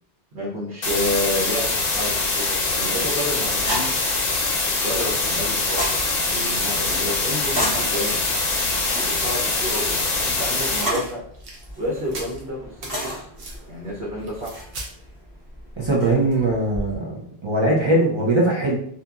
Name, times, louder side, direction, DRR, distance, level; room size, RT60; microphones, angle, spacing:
voice 1, 0.3-3.9 4.8-6.0 6.2-8.2 8.9-11.2 11.8-13.3 13.7-14.6, equal, 80° right, -6 dB, 1.1 m, -30 dB
sound 1, 0.8-10.8, left 3 dB, 50° left, 0.6 m, -23 dB
sound 2, 3.0-3.5 4.1-4.7 5.3-7.3 7.9-10.0 10.2-10.3 11.3-11.6 12.1-12.4 12.8-12.9 13.4-13.6 14.2-14.9, right 2 dB, 65° right, 0.9 m, -39 dB
sound 3, 3.6-16.9, equal, 20° right, 1.0 m, -34 dB
voice 2, 15.8-18.8, right 2 dB, 40° right, -4 dB, 0.4 m, -21 dB
2.8 x 2.4 x 2.3 m, 0.65 s
omnidirectional pair, 1.1 m